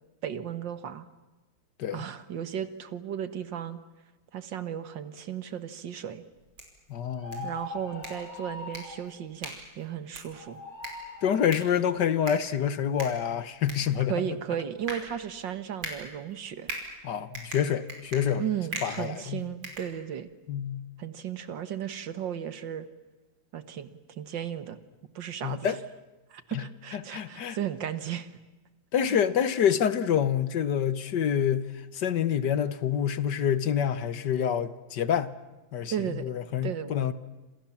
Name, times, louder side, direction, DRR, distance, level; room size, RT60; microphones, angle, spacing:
voice 1, 0.2-1.1 1.9-3.8 4.3-6.2 7.4-10.6 14.1-16.7 18.4-20.3 21.0-22.9 23.5-23.9 24.2-24.8 25.2-25.8 26.3-28.3 29.1-29.2 35.9-36.3 36.6-36.9, right 9 dB, 70° right, 2.1 m, -35 dB
sound 1, 6.3-20.5, right 2 dB, 90° right, 6.1 m, -43 dB
voice 2, 6.9-7.5 11.2-14.1 17.0-18.4 18.8-19.5 20.5-20.9 25.4-25.8 26.5-26.6 26.9-27.6 28.9-35.3 35.7-37.1, left 8 dB, 65° left, 1.7 m, -27 dB
sound 2, 7.1-9.0 10.3-11.3, left 1 dB, 20° left, 6.9 m, -41 dB
28.0 x 27.0 x 7.3 m
omnidirectional pair, 2.1 m